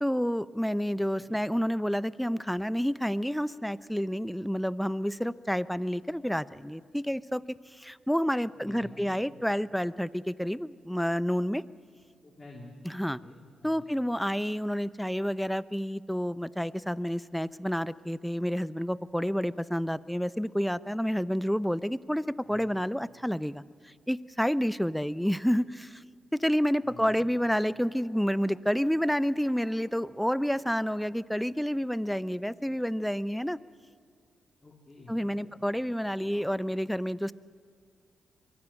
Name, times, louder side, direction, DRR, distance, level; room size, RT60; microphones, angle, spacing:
voice 1, 0.0-11.6 12.8-13.2 13.6-26.0 26.3-33.6 35.1-37.3, equal, ahead, 18 dB, 0.6 m, -29 dB
voice 2, 8.4-9.1 12.2-12.7 13.2-13.9 22.5-22.7 25.2-25.3 26.8-27.2 34.6-35.5, left 2 dB, 30° left, 0 dB, 3.0 m, -50 dB
22.5 x 15.0 x 8.9 m, 2.2 s
supercardioid pair, 50°, 0 cm